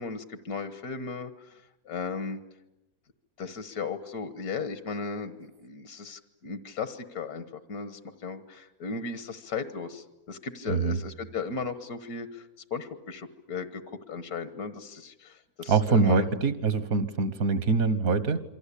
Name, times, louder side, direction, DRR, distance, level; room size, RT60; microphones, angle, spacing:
voice 1, 0.0-1.5 1.9-2.4 3.4-16.3, left 5 dB, 90° left, 11 dB, 1.8 m, -36 dB
voice 2, 10.7-11.0 15.7-18.4, right 4 dB, 75° right, 13 dB, 1.8 m, -24 dB
27.5 x 23.5 x 8.5 m, 0.90 s
omnidirectional pair, 1.5 m